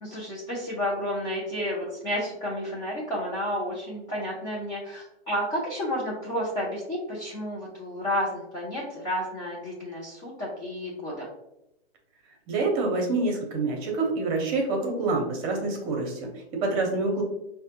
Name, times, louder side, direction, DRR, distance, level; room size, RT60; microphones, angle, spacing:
voice 1, 0.0-11.3, equal, 15° left, -6 dB, 0.4 m, -31 dB
voice 2, 12.5-17.2, right 3 dB, 30° right, 1 dB, 0.8 m, -27 dB
4.7 x 2.2 x 2.8 m, 0.84 s
hypercardioid pair, 145°, 34 cm